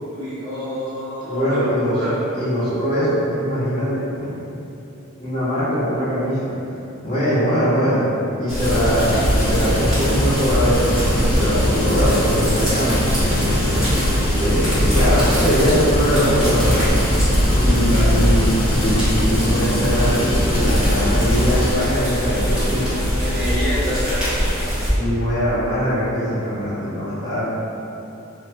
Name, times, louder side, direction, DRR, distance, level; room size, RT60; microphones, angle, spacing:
voice 1, 0.1-2.1 17.9-18.1 23.1-24.5, left 1 dB, 45° right, -13 dB, 1.2 m, -28 dB
voice 2, 1.2-2.0 2.3-4.3 5.2-6.5 7.0-8.0 8.4-13.0 13.3-13.8 14.4-16.9 17.6-23.0 24.9-27.4, equal, 25° left, -16 dB, 1.4 m, -22 dB
sound 1, 8.5-24.9, equal, 5° right, 1.0 m, -21 dB
sound 2, 8.6-21.7, left 1 dB, 70° left, 0.8 m, -23 dB
2.8 x 2.5 x 3.3 m, 3.0 s
head